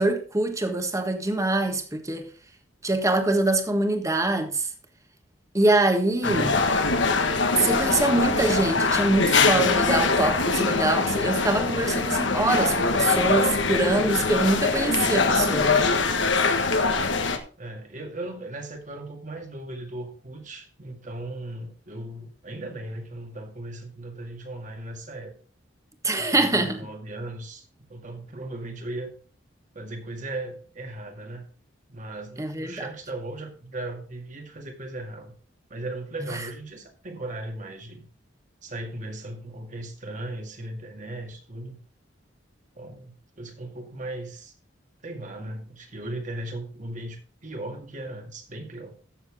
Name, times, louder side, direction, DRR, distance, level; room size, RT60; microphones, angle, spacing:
voice 1, 0.0-2.3 2.8-4.7 5.5-6.6 7.6-15.8 26.0-26.8 32.4-32.8, right 2 dB, 15° right, 1.4 m, -24 dB
sound 1, 6.2-17.4, left 4 dB, 70° left, 1.3 m, -23 dB
voice 2, 6.2-6.6 17.6-25.3 26.2-29.1 29.7-31.5 31.9-35.4 35.7-38.1 38.6-41.8 42.8-44.5 45.0-48.9, right 1 dB, 40° right, 2.1 m, -37 dB
14.0 x 7.0 x 3.6 m
head